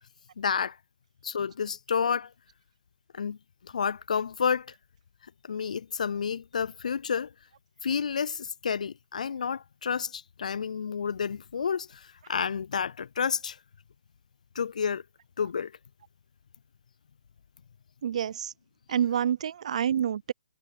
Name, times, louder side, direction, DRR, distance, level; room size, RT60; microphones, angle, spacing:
voice 1, 0.4-0.8 1.2-2.3 3.1-3.4 3.6-4.7 5.4-7.3 7.8-13.6 14.6-15.0 15.4-15.7, left 6 dB, 75° left, 0.4 m, -30 dB
voice 2, 18.0-18.5 18.9-20.3, right 9 dB, 60° right, 0.5 m, -27 dB
hypercardioid pair, 140°, 4 cm